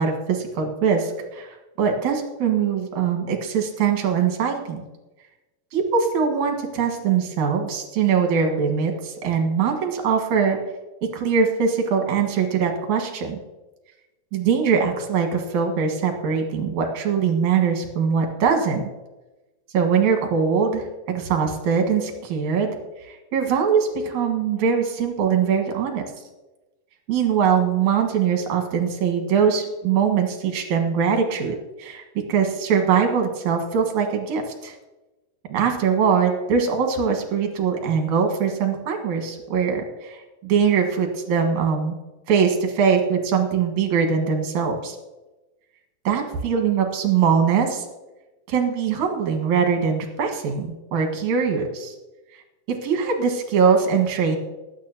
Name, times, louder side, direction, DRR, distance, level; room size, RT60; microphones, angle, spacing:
voice 1, 0.0-4.8 5.7-10.6 11.1-13.4 14.3-18.8 19.7-22.8 23.1-26.0 27.1-32.0 32.3-34.7 35.5-41.9 42.3-45.0 46.0-47.8 48.5-51.9 52.7-54.4, right 6 dB, 60° right, 2 dB, 2.8 m, -22 dB
20.0 x 9.3 x 2.9 m, 1.1 s
omnidirectional pair, 4.2 m